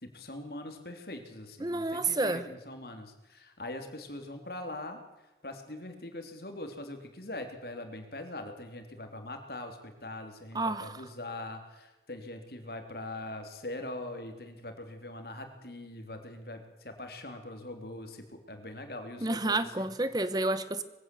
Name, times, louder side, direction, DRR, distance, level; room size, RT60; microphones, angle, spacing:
voice 1, 0.0-5.0 5.4-19.9, left 1 dB, 60° left, 6 dB, 3.3 m, -42 dB
voice 2, 1.6-2.4 10.5-10.9 19.2-20.8, right 2 dB, 20° right, 13 dB, 0.9 m, -30 dB
22.0 x 16.0 x 7.8 m, 1.1 s
head